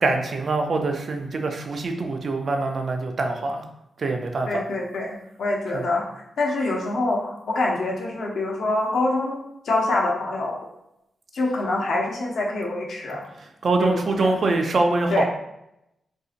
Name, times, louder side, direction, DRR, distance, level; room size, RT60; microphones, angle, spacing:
voice 1, 0.0-3.6 4.0-4.5 5.7-5.8 13.4-15.2, right 3 dB, 50° right, 4 dB, 0.4 m, -24 dB
voice 2, 4.5-6.0 6.4-10.6 11.3-13.2 13.8-14.4 15.1-15.2, left 2 dB, 70° left, -2 dB, 0.7 m, -25 dB
3.8 x 2.7 x 2.5 m, 0.83 s
wide cardioid pair, 145°, 0 cm